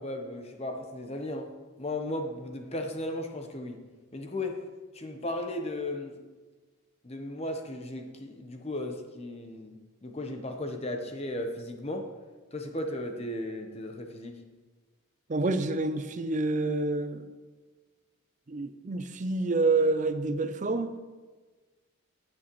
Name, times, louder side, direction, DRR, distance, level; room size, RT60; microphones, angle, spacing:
voice 1, 0.0-1.5 1.8-3.8 4.1-4.6 4.9-6.2 7.0-12.1 12.5-14.4, left 1 dB, 25° left, 4 dB, 0.9 m, -35 dB
voice 2, 15.3-17.3 18.5-20.9, right 3 dB, 35° right, 10 dB, 0.4 m, -28 dB
18.0 x 6.3 x 3.1 m, 1.3 s
head